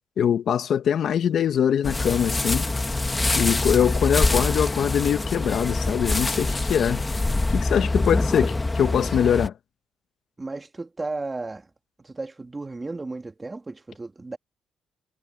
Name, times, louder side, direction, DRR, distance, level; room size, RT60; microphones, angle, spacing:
voice 1, 0.2-2.7 3.4-7.0 7.5-9.5, left 8 dB, 65° left, 1.3 m, -23 dB
sound 1, 1.8-9.5, left 2 dB, 20° left, 1.9 m, -25 dB
voice 2, 10.4-11.6 12.0-14.4, right 3 dB, 20° right, 2.7 m, -34 dB
cardioid pair, 90°, 0 cm